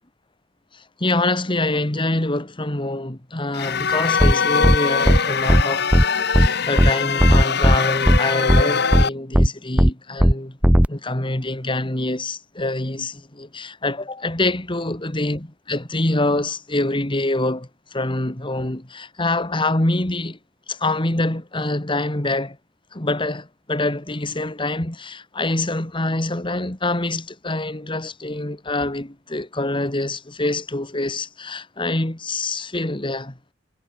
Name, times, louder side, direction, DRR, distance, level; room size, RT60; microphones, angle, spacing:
voice 1, 0.7-5.9 6.3-10.6 10.9-20.4 20.7-22.6 22.9-33.4, left 2 dB, 25° left, 2.1 m, -25 dB
sound 1, 3.5-9.1, left 6 dB, 60° left, 1.8 m, -22 dB
sound 2, 4.2-4.3 4.6-4.8 5.1-5.2 5.5-5.6 5.9-6.0 6.3-6.5 6.8-6.9 7.2-7.8 8.1-8.2 8.5-8.6 8.9-9.0 9.3-9.5 9.8-9.9 10.2-10.3 10.6-10.9, equal, 10° right, 1.0 m, -14 dB
head